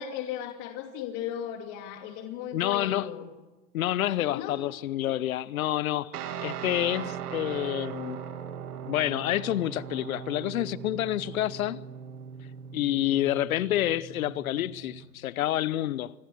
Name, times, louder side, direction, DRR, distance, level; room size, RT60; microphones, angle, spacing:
voice 1, 0.0-3.3 4.3-4.6, left 9 dB, 35° left, 2.5 m, -36 dB
voice 2, 2.5-3.1 3.7-6.1 6.4-8.2 8.8-11.8 12.7-16.1, left 13 dB, 55° left, 0.9 m, -28 dB
Guitar, 6.1-15.1, right 8 dB, 65° right, 3.1 m, -39 dB
27.0 x 20.5 x 8.0 m
hypercardioid pair, 125°, 50 cm